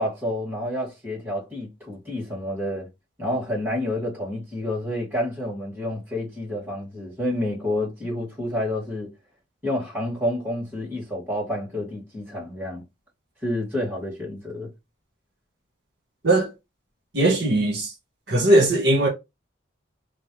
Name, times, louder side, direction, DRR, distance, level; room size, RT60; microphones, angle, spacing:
voice 1, 0.0-2.9 3.2-9.1 9.6-12.8 13.4-14.7, left 1 dB, 10° right, 2.4 m, -29 dB
voice 2, 17.1-17.9 18.3-19.1, right 1 dB, 55° right, 1.6 m, -19 dB
5.2 x 2.2 x 3.2 m
head